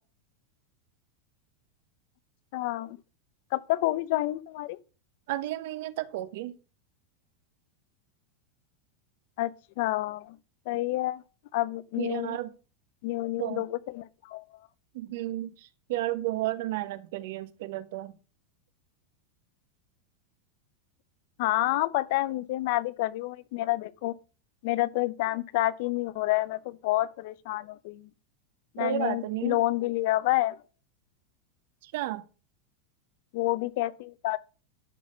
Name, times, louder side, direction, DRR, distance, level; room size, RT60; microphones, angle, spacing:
voice 1, 2.5-3.0 3.5-4.8 9.4-9.5 9.8-10.4 10.7-11.2 11.5-12.4 13.0-14.4 21.4-24.1 24.6-28.1 28.7-30.6 33.3-34.4, left 17 dB, 50° left, 0.6 m, -28 dB
voice 2, 5.3-6.6 12.0-12.5 13.4-13.6 14.9-18.1 28.8-29.6 31.8-32.2, right 15 dB, 55° right, 0.9 m, -32 dB
11.5 x 4.1 x 6.2 m
supercardioid pair, 170°, 0 cm